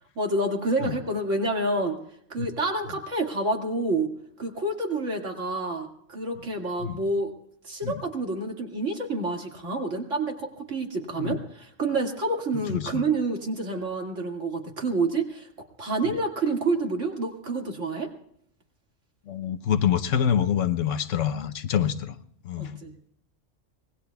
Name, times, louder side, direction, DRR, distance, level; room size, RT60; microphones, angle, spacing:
voice 1, 0.2-2.0 2.3-4.1 4.4-7.3 7.6-15.5 15.8-18.1 22.6-22.9, right 2 dB, 70° right, 1 dB, 2.6 m, -28 dB
voice 2, 12.7-13.0 19.3-22.2 22.4-22.8, left 9 dB, 75° left, 10 dB, 1.2 m, -26 dB
25.5 x 20.5 x 2.3 m, 0.71 s
omnidirectional pair, 1.3 m